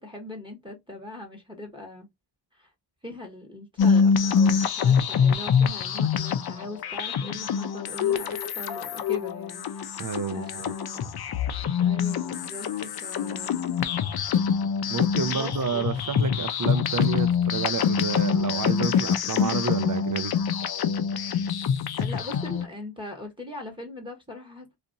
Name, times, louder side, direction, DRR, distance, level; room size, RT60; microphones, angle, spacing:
voice 1, 0.0-2.1 2.5-2.7 3.0-11.1 11.8-13.6 15.3-16.0 16.2-16.5 22.0-24.7, left 2 dB, 10° right, 1.1 m, -41 dB
sound 1, 3.8-22.7, left 7 dB, 50° left, 0.6 m, -25 dB
voice 2, 10.0-10.7 14.9-20.3, right 5 dB, 45° right, 0.5 m, -30 dB
2.7 x 2.5 x 2.5 m
cardioid pair, 50°, 49 cm